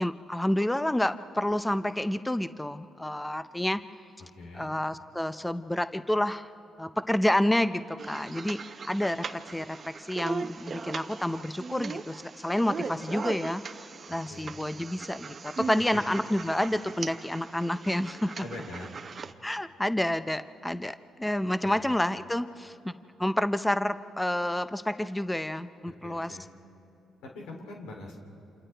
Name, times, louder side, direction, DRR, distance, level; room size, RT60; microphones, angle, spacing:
voice 1, 0.0-3.8 4.5-6.5 6.8-18.3 19.4-22.9 23.2-26.4, left 1 dB, 10° left, 12 dB, 0.5 m, -29 dB
voice 2, 4.4-4.7 14.1-14.6 15.6-15.7 18.4-19.0 21.6-21.9 26.0-26.5 27.2-28.2, left 2 dB, 90° left, 1 dB, 2.9 m, -43 dB
sound 1, 8.0-19.3, right 5 dB, 40° right, 0.7 m, -39 dB
29.0 x 27.5 x 3.4 m, 2.8 s
cardioid pair, 90°, 0 cm